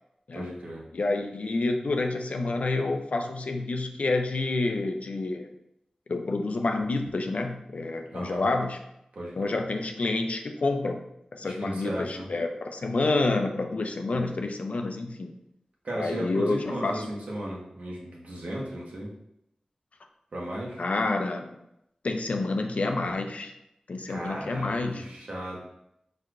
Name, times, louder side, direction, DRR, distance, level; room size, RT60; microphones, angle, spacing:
voice 1, 0.3-0.8 8.1-8.4 9.1-9.5 11.4-12.3 14.1-14.3 15.8-19.1 20.3-20.8 24.1-25.6, right 1 dB, 80° right, -4 dB, 1.3 m, -35 dB
voice 2, 0.9-5.5 6.1-8.8 9.3-11.0 11.3-15.3 16.0-17.0 20.8-21.5 22.0-23.5 23.9-25.1, left 2 dB, 70° left, 4 dB, 0.5 m, -28 dB
4.5 x 4.3 x 2.5 m, 0.81 s
cardioid pair, 45°, 2 cm